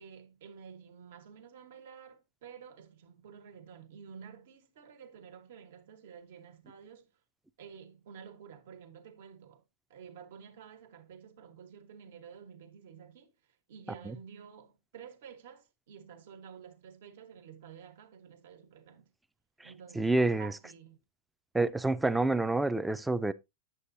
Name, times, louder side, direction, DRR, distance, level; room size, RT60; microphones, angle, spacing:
voice 1, 0.0-7.1 7.6-9.6 9.9-13.3 13.7-19.1 19.6-21.0, right 7 dB, 65° right, 1.4 m, -51 dB
voice 2, 20.0-20.5 21.5-23.3, right 2 dB, 5° right, 0.4 m, -28 dB
8.4 x 7.1 x 2.7 m
supercardioid pair, 140°, 0 cm